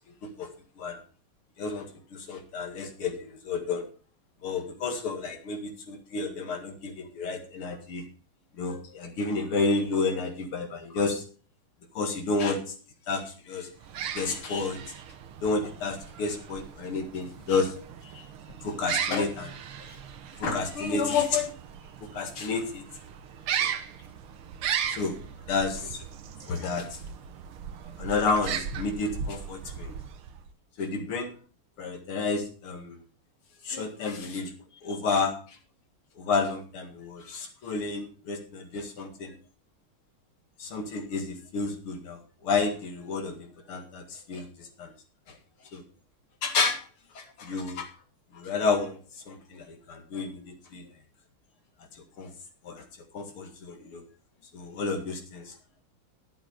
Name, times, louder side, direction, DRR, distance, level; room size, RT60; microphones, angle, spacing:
voice 1, 1.6-3.8 4.4-8.0 8.6-11.2 11.9-12.7 13.1-13.7 14.1-14.8 15.4-17.7 18.0-18.3 18.6-19.6 19.9-20.0 20.4-21.5 22.0-22.8 23.6-23.7 24.9-25.2 25.5-26.0 26.4-27.0 28.0-29.9 30.8-31.4 31.8-33.0 33.6-34.5 34.8-35.6 36.2-39.3 40.6-44.9 45.3-45.4 45.7-45.8 46.4-46.8 47.1-47.9 48.3-49.0 49.3-50.9 51.9-52.3 52.6-52.8 53.1-54.0 54.5-55.6, left 4 dB, 85° left, 4 dB, 2.8 m, -30 dB
sound 1, 13.8-30.5, right 8 dB, 80° right, 1.9 m, -37 dB
11.5 x 7.6 x 5.0 m, 0.39 s
omnidirectional pair, 2.3 m